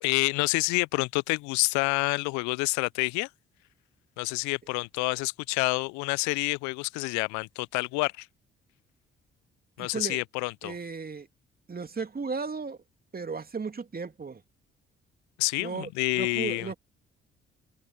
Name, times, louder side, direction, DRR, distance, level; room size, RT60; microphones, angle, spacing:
voice 1, 0.0-3.3 4.2-8.3 9.8-10.7 15.4-16.7, left 27 dB, 70° left, 0.8 m, -28 dB
voice 2, 9.8-10.2 10.6-11.3 11.7-12.8 13.1-14.4 15.6-16.8, right 4 dB, 30° right, 2.7 m, -35 dB
figure-of-eight pair, 45°, 30 cm